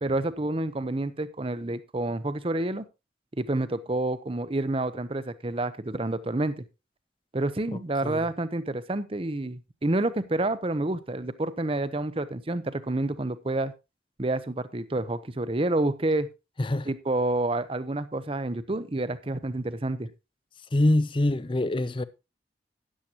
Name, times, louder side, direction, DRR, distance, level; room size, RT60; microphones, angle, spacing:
voice 1, 0.0-2.8 3.4-6.6 7.3-13.7 14.2-16.3 16.9-20.1, right 2 dB, 30° right, 0.7 m, -29 dB
voice 2, 7.7-8.3 16.6-16.9 20.7-22.0, left 1 dB, 30° left, 0.5 m, -25 dB
13.0 x 10.0 x 2.9 m
head